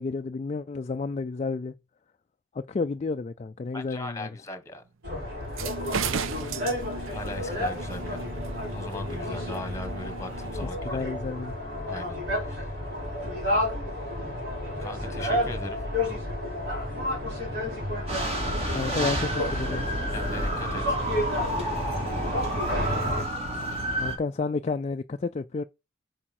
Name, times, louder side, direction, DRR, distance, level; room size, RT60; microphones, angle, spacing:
voice 1, 0.0-1.7 2.5-4.3 10.9-11.6 18.7-19.9 24.0-25.6, left 4 dB, 35° left, 0.3 m, -31 dB
voice 2, 3.7-4.8 7.1-8.2 8.7-11.0 11.9-12.7 14.8-15.8 20.1-21.0, left 2 dB, 15° left, 1.4 m, -39 dB
sound 1, 5.0-23.2, left 1 dB, 55° right, 4.9 m, -31 dB
sound 2, 5.4-10.7, right 6 dB, 90° right, 0.6 m, -36 dB
sound 3, 18.1-24.2, right 1 dB, 30° right, 2.4 m, -31 dB
8.7 x 5.0 x 4.3 m
head